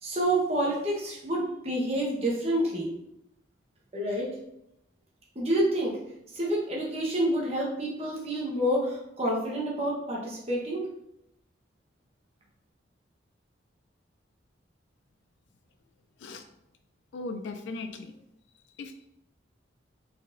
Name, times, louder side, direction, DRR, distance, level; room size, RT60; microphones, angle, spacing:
voice 1, 0.0-2.9 3.9-4.3 5.3-6.0 6.3-10.8, right 1 dB, 30° right, -3 dB, 1.0 m, -28 dB
voice 2, 17.1-18.1 18.8-19.1, left 3 dB, 70° left, 7 dB, 0.3 m, -38 dB
4.2 x 4.0 x 2.5 m, 0.82 s
head